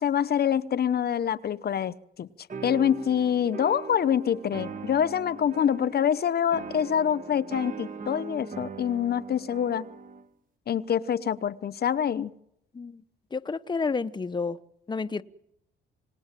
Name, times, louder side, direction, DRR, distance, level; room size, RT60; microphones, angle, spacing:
voice 1, 0.0-2.3 2.6-9.9 10.7-12.3, left 8 dB, 50° left, 0.9 m, -26 dB
sound 1, 2.5-10.3, right 5 dB, 40° right, 1.9 m, -40 dB
voice 2, 13.3-14.6 14.9-15.2, left 4 dB, 20° left, 0.9 m, -30 dB
28.0 x 19.0 x 7.5 m
cardioid pair, 90°, 20 cm